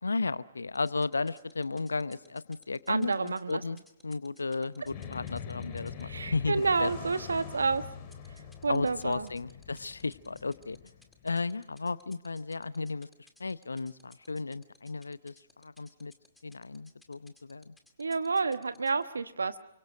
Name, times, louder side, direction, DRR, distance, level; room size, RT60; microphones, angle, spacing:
voice 1, 0.0-3.8 4.0-6.9 8.7-10.8 11.2-13.1 13.4-16.1 16.4-17.7, left 3 dB, 75° left, 17 dB, 0.8 m, -34 dB
sound 1, 0.7-6.0 8.1-19.0, left 2 dB, 5° left, 2.2 m, -59 dB
voice 2, 2.9-3.6 6.0-7.8 8.6-9.3 18.0-19.6, right 4 dB, 70° right, 11 dB, 1.2 m, -29 dB
sound 2, 4.8-11.4, left 7 dB, 30° left, 3.4 m, -44 dB
29.0 x 24.5 x 5.1 m, 0.84 s
figure-of-eight pair, 125°, 0 cm